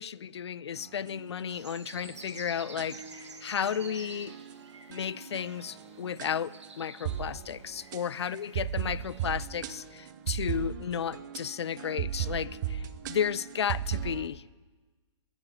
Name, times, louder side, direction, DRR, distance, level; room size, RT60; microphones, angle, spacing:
voice 1, 0.0-4.3 4.9-14.4, left 8 dB, 65° left, 21 dB, 0.4 m, -33 dB
sound 1, 0.8-1.5 1.9-14.3, right 9 dB, 40° right, 0.8 m, -37 dB
sound 2, 1.5-9.4, right 4 dB, 70° right, 1.5 m, -50 dB
10.5 x 7.7 x 9.0 m, 1.3 s
figure-of-eight pair, 115°, 15 cm